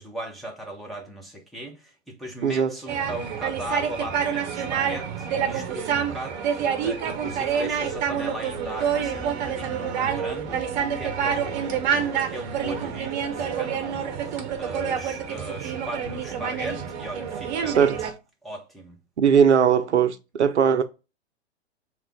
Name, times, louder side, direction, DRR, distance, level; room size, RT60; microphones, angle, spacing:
voice 1, 0.0-17.8 18.4-19.0 20.6-20.7, right 1 dB, ahead, 1.0 m, -37 dB
voice 2, 2.4-2.7 17.8-18.0 19.2-20.8, right 7 dB, 80° right, 0.5 m, -19 dB
sound 1, 2.9-18.1, right 7 dB, 40° right, 0.9 m, -27 dB
3.5 x 3.0 x 3.5 m
figure-of-eight pair, 110°, 33 cm